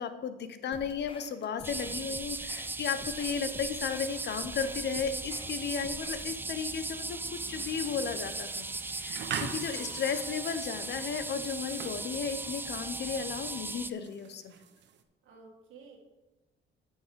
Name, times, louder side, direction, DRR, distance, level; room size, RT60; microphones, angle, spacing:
voice 1, 0.0-8.7 8.9-14.6, left 6 dB, 60° left, 10 dB, 0.9 m, -34 dB
sound 1, 0.7-6.3, left 3 dB, 25° left, 0.8 m, -50 dB
sound 2, 1.6-13.9, right 2 dB, 10° right, 0.4 m, -38 dB
sound 3, 7.5-15.0, right 8 dB, 65° right, 0.8 m, -44 dB
voice 2, 9.7-10.2 15.2-16.0, right 4 dB, 90° right, 0 dB, 2.0 m, -53 dB
8.5 x 5.4 x 5.1 m, 1.0 s
cardioid pair, 90°, 20 cm